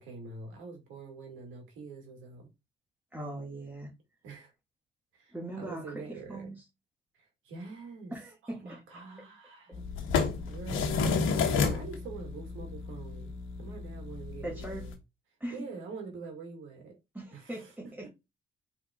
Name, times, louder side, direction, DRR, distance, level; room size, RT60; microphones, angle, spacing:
voice 1, 0.0-2.5 4.2-4.5 5.1-6.5 7.1-8.1 8.4-9.8 10.4-14.9 15.5-17.0 17.3-17.7, right 4 dB, 85° right, 2.2 m, -45 dB
voice 2, 3.1-3.9 5.3-6.6 8.1-8.8 14.4-14.8 15.4-15.7 17.1-18.1, right 1 dB, 10° right, 1.8 m, -40 dB
sound 1, 9.7-14.9, left 5 dB, 85° left, 1.2 m, -31 dB
5.1 x 4.2 x 2.4 m
cardioid pair, 90°, 20 cm